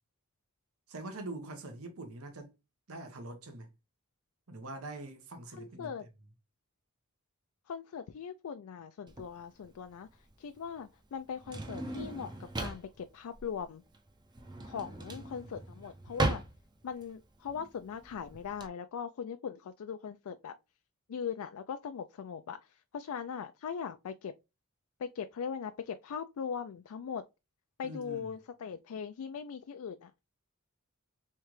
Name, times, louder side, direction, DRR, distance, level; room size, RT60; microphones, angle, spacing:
voice 1, 0.9-2.5 2.9-3.7 4.5-5.9 15.1-15.6 27.8-28.3, right 2 dB, 80° right, 1.0 m, -44 dB
voice 2, 5.5-6.1 7.7-12.3 12.6-13.8 14.6-16.4 16.8-20.5 21.1-24.3 25.0-27.2 27.8-30.3, left 7 dB, 80° left, 0.4 m, -40 dB
Drawer open or close, 9.1-18.7, right 2 dB, 20° right, 0.5 m, -38 dB
3.7 x 3.3 x 3.0 m
head